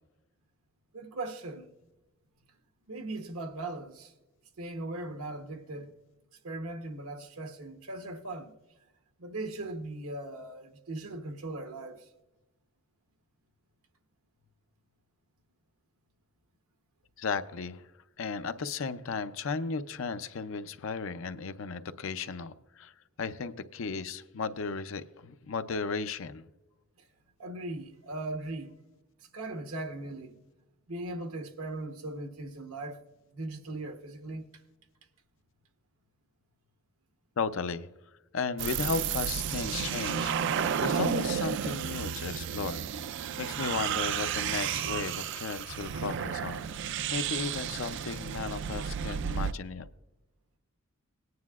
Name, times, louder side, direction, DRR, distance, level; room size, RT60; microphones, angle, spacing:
voice 1, 0.9-1.7 2.9-4.1 4.6-5.9 6.4-8.5 9.2-12.0 27.4-28.7 29.3-30.4 30.9-33.0 33.3-34.4 39.5-39.6, right 2 dB, 80° right, 1.0 m, -39 dB
voice 2, 17.2-17.8 18.2-22.9 23.2-26.4 37.4-37.9 38.3-40.3 40.8-42.8 43.4-49.9, left 4 dB, 65° left, 0.5 m, -35 dB
sound 1, 38.6-49.5, right 8 dB, 55° right, 0.3 m, -32 dB
18.5 x 9.5 x 2.4 m
head